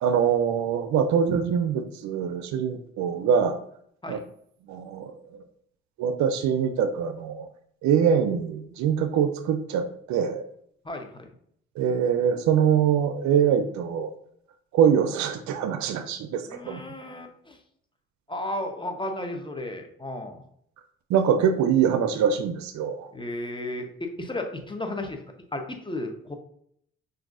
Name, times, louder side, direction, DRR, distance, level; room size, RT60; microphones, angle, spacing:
voice 1, 0.0-3.6 4.1-4.2 4.7-5.4 6.0-7.5 7.8-10.4 11.8-14.1 14.7-16.8 21.1-23.1, right 7 dB, 65° right, 8 dB, 0.5 m, -24 dB
voice 2, 10.8-11.3 16.5-17.6 18.3-20.4 23.1-25.2 25.5-26.3, left 1 dB, 15° left, 4 dB, 0.8 m, -34 dB
5.8 x 2.6 x 2.5 m, 0.67 s
hypercardioid pair, 45°, 31 cm